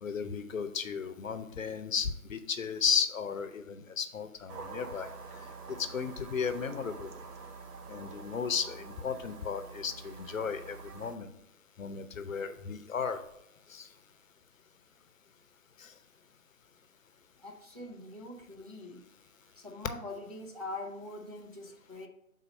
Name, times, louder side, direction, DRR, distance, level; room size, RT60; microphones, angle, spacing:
voice 1, 0.0-5.1 5.7-7.1 7.9-11.3 11.8-13.2 13.7-13.9 15.8-15.9, left 6 dB, 60° left, 10 dB, 0.7 m, -34 dB
sound 1, 4.5-11.2, right 4 dB, 90° right, 0.8 m, -46 dB
voice 2, 17.4-19.0 19.6-22.1, left 2 dB, 25° right, -2 dB, 0.4 m, -43 dB
5.5 x 3.9 x 5.1 m, 0.83 s
figure-of-eight pair, 155°, 45 cm